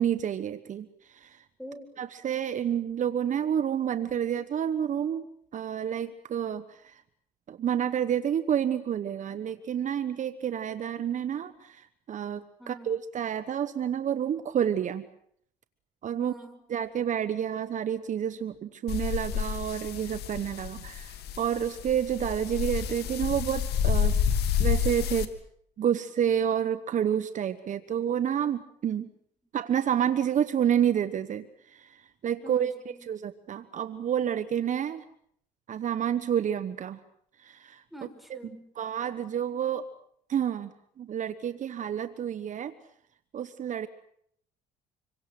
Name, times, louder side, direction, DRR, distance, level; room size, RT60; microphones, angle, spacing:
voice 1, 0.0-1.4 2.0-5.2 5.5-7.0 7.5-15.0 16.0-16.3 16.7-24.2 24.6-25.3 25.8-29.1 29.5-32.0 32.2-32.7 33.1-35.0 35.7-37.0 37.4-37.8 38.3-39.8 40.3-42.7 43.3-43.9, right 9 dB, 45° right, 11 dB, 1.2 m, -29 dB
voice 2, 12.6-12.9 16.2-16.6 32.4-33.1 37.9-38.7, equal, ahead, 6 dB, 4.9 m, -45 dB
sound 1, 18.9-25.2, left 8 dB, 75° left, 2.5 m, -29 dB
27.0 x 23.5 x 7.7 m, 0.68 s
cardioid pair, 110°, 17 cm